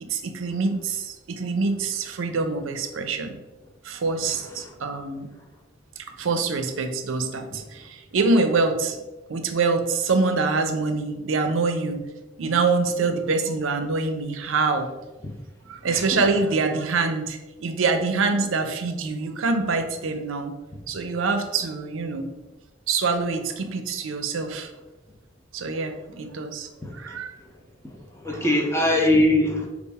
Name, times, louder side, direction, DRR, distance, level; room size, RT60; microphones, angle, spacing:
voice 1, 0.0-3.3 3.8-5.3 6.2-9.0 9.3-12.0 12.4-14.9 15.7-20.5 20.9-22.3 22.9-24.7 25.5-27.3, right 4 dB, 85° right, 8 dB, 0.5 m, -25 dB
voice 2, 4.2-4.7 15.2-15.3 15.9-16.3 26.8-27.2 27.8-29.7, left 1 dB, 15° left, 1 dB, 0.6 m, -23 dB
5.3 x 2.4 x 3.4 m, 1.1 s
head